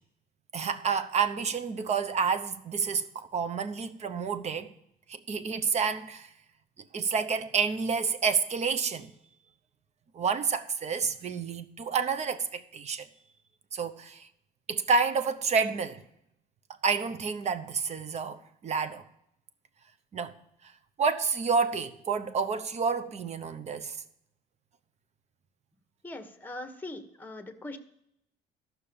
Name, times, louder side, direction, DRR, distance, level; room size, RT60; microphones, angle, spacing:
voice 1, 0.5-4.7 5.1-6.3 6.9-9.1 10.1-13.1 13.7-14.3 14.7-16.0 16.8-19.0 20.1-20.3 21.0-24.0, right 5 dB, 40° right, 0.8 m, -29 dB
voice 2, 26.0-27.8, left 2 dB, 10° left, 1.1 m, -41 dB
13.5 x 5.9 x 7.0 m
cardioid pair, 110°, 17 cm